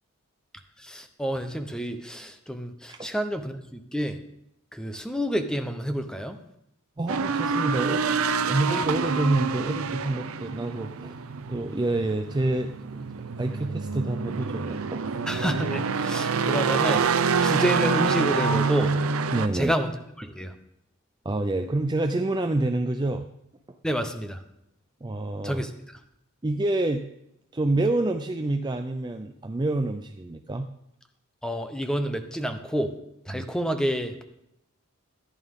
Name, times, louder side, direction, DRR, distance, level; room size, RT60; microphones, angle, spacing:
voice 1, 0.8-4.2 4.7-6.4 15.3-18.9 19.5-19.9 20.2-20.5 23.8-24.4 25.4-26.0 31.4-32.9 33.3-34.2, equal, 5° left, 7 dB, 0.8 m, -29 dB
voice 2, 7.0-11.2 11.5-13.1 13.4-15.2 19.3-19.7 21.2-23.3 23.7-23.8 25.0-25.6 26.4-27.0 27.5-30.7 33.3-33.4, right 2 dB, 20° right, 6 dB, 0.4 m, -27 dB
sound 1, 7.1-19.5, right 5 dB, 70° right, 0.6 m, -27 dB
14.5 x 11.0 x 3.7 m, 0.82 s
head